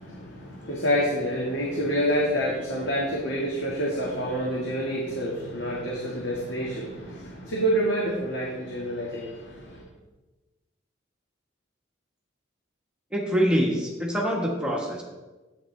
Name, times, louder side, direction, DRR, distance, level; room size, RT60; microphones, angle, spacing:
voice 1, 0.0-9.9, equal, 65° left, -4 dB, 1.7 m, -28 dB
voice 2, 13.1-15.0, equal, 5° right, -2 dB, 1.4 m, -25 dB
11.0 x 8.5 x 3.3 m, 1.2 s
head